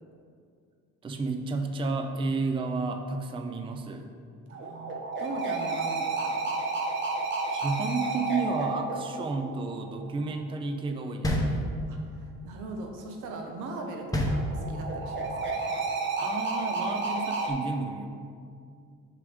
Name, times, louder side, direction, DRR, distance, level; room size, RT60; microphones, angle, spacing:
voice 1, 1.0-4.1 7.5-11.7 16.2-18.1, right 3 dB, 15° right, 5 dB, 0.4 m, -31 dB
sound 1, 4.5-10.1 13.7-17.5, right 3 dB, 40° right, 1.1 m, -31 dB
voice 2, 4.5-6.4 11.9-15.6, right 2 dB, 80° right, 2 dB, 1.0 m, -40 dB
sound 2, 11.2-12.2 14.1-15.0, equal, 10° left, 0.9 m, -28 dB
6.7 x 4.9 x 3.5 m, 2.2 s
cardioid pair, 95°, 30 cm